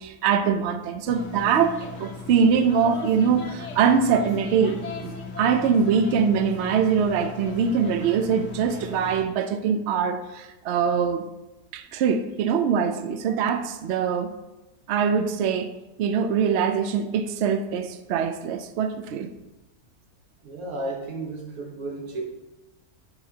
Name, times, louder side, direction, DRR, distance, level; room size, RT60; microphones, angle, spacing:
voice 1, 0.0-1.7 2.0-11.3 11.7-14.3 14.9-19.3, right 6 dB, 85° right, 8 dB, 0.5 m, -23 dB
sound 1, 1.0-9.2, left 4 dB, 55° left, 1.1 m, -37 dB
voice 2, 20.4-22.2, right 2 dB, 65° right, 0 dB, 1.5 m, -33 dB
9.8 x 4.9 x 2.8 m, 1.0 s
omnidirectional pair, 1.7 m